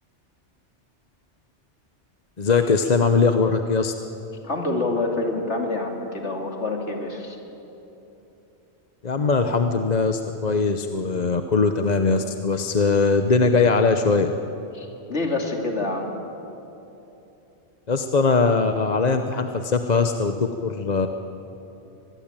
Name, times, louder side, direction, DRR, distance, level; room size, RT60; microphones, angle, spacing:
voice 1, 2.4-3.9 9.0-14.3 17.9-21.1, left 4 dB, 40° left, 7 dB, 0.9 m, -21 dB
voice 2, 4.4-7.4 14.7-16.1, left 2 dB, 70° left, 2 dB, 3.0 m, -27 dB
24.0 x 21.0 x 9.0 m, 3.0 s
omnidirectional pair, 1.2 m